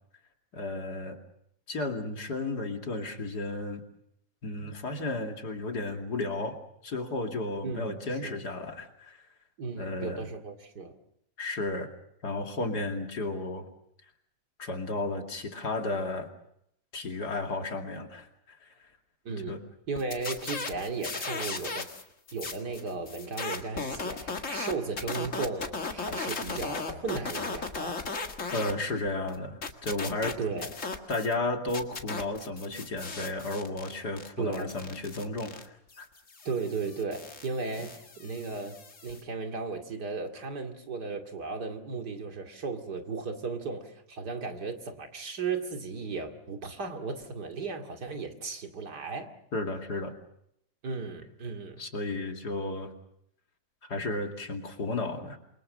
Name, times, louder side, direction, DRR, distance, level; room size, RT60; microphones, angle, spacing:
voice 1, 0.5-1.2 1.7-3.8 4.4-9.2 9.8-10.3 11.4-11.9 12.2-13.7 14.6-16.3 16.9-18.9 19.5-19.6 28.5-30.4 31.1-36.1 49.5-50.2 51.8-52.9 53.9-55.4, left 2 dB, 80° left, 3 dB, 3.1 m, -33 dB
voice 2, 7.6-8.4 9.6-10.9 19.2-19.6 19.9-21.9 22.3-28.0 30.4-30.7 34.4-34.7 36.4-38.7 39.0-49.3 50.8-51.8, right 4 dB, 85° right, 4 dB, 3.0 m, -35 dB
sound 1, 20.0-22.0 22.3-28.7 29.1-31.3 31.7-39.2, left 4 dB, 50° left, 2.2 m, -37 dB
28.0 x 23.0 x 6.5 m, 0.75 s
omnidirectional pair, 1.7 m